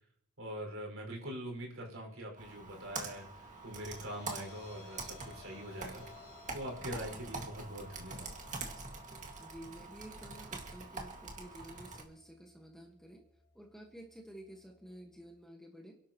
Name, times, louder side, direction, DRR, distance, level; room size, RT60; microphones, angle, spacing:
voice 1, 0.4-6.0 6.5-8.4, equal, 65° right, 0 dB, 6.0 m, -43 dB
Computer keyboard, 2.4-12.0, right 3 dB, 35° right, 2.2 m, -45 dB
sound 1, 3.1-15.4, left 4 dB, 85° left, 3.7 m, -60 dB
voice 2, 9.4-13.2 13.5-15.9, right 1 dB, ahead, 1 dB, 1.7 m, -51 dB
28.0 x 11.5 x 3.2 m, 0.72 s
head